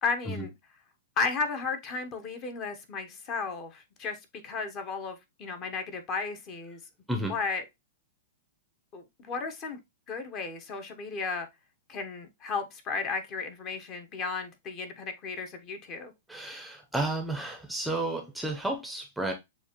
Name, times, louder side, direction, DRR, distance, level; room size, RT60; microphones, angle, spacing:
voice 1, 0.0-0.5 1.2-4.2 4.4-6.8 7.3-7.6 8.9-9.8 10.1-11.5 11.9-16.1, left 4 dB, 35° left, 1.0 m, -34 dB
voice 2, 16.3-19.3, right 2 dB, ahead, 0.7 m, -32 dB
6.9 x 2.5 x 3.0 m
hypercardioid pair, 140°, 0 cm